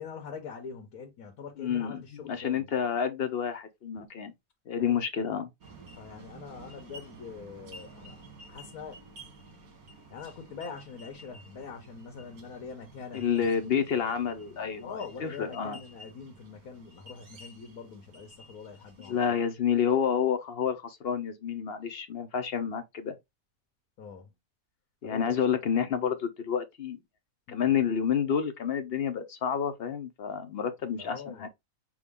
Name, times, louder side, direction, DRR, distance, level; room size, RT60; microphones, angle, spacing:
voice 1, 0.0-2.7 4.8-5.0 5.9-8.2 8.5-9.0 10.1-13.4 14.8-19.2 24.0-24.3 25.0-25.4 27.5-27.7 31.0-31.5, left 5 dB, 90° left, 1.4 m, -43 dB
voice 2, 1.6-2.0 2.3-4.3 4.7-5.5 13.1-14.9 15.2-15.8 19.1-23.1 25.0-27.0 27.5-31.5, left 7 dB, 60° left, 0.7 m, -29 dB
sound 1, 5.6-19.4, right 2 dB, 80° right, 1.7 m, -51 dB
6.1 x 2.3 x 3.5 m
omnidirectional pair, 1.5 m